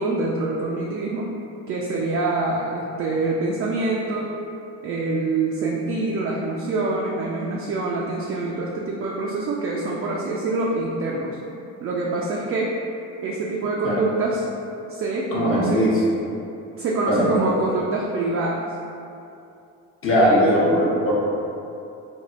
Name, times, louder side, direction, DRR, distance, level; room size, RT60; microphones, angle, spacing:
voice 1, 0.0-1.4 1.7-4.3 4.8-11.4 11.8-12.7 13.2-14.4 14.9-15.9 16.8-18.6 20.1-20.4, right 3 dB, 40° right, -3 dB, 0.4 m, -25 dB
voice 2, 15.3-15.9 17.1-17.4 20.0-21.1, equal, 35° left, -6 dB, 1.0 m, -19 dB
3.3 x 2.1 x 2.5 m, 2.6 s
supercardioid pair, 70°, 36 cm